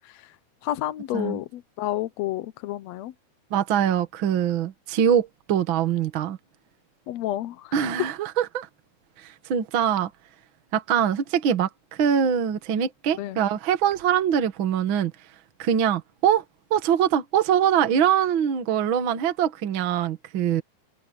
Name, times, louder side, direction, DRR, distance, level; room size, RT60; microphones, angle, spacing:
voice 1, 0.6-3.1 7.1-7.9 13.2-13.4, left 14 dB, 75° left, 1.8 m, -30 dB
voice 2, 3.5-6.4 7.7-8.7 9.2-10.1 10.7-11.7 12.0-15.1 15.6-16.4 16.7-20.6, right 9 dB, 50° right, 1.9 m, -23 dB
omnidirectional pair, 3.4 m